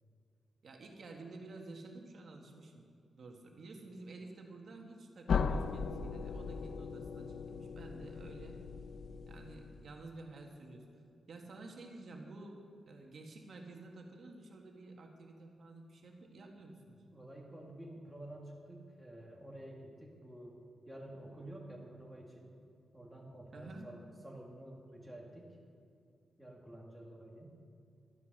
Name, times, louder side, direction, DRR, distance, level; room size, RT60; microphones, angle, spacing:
voice 1, 0.6-2.9 3.2-8.6 9.3-10.9 11.3-12.6 12.9-17.0 23.5-23.9, right 2 dB, 55° right, 1 dB, 1.7 m, -51 dB
sound 1, 5.3-10.0, left 5 dB, 65° left, 0.5 m, -38 dB
voice 2, 17.1-22.6 22.9-25.6 26.4-27.6, right 1 dB, ahead, -2 dB, 2.1 m, -50 dB
12.5 x 9.5 x 6.7 m, 2.4 s
wide cardioid pair, 150°, 0 cm